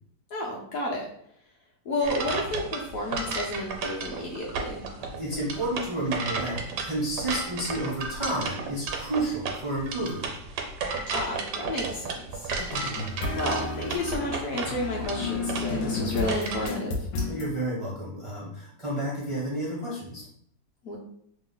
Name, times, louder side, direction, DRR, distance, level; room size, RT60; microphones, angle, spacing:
voice 1, 0.3-1.1 1.8-4.9 11.1-12.5 13.3-17.1 20.8-21.0, left 1 dB, 65° left, -3 dB, 0.9 m, -31 dB
sound 1, 2.0-16.7, right 4 dB, 75° right, 1.1 m, -33 dB
voice 2, 5.0-10.3 17.3-20.2, right 1 dB, 40° right, -6 dB, 0.4 m, -31 dB
sound 2, 12.6-17.5, left 3 dB, 90° left, 1.3 m, -32 dB
3.0 x 2.0 x 3.7 m, 0.67 s
omnidirectional pair, 1.9 m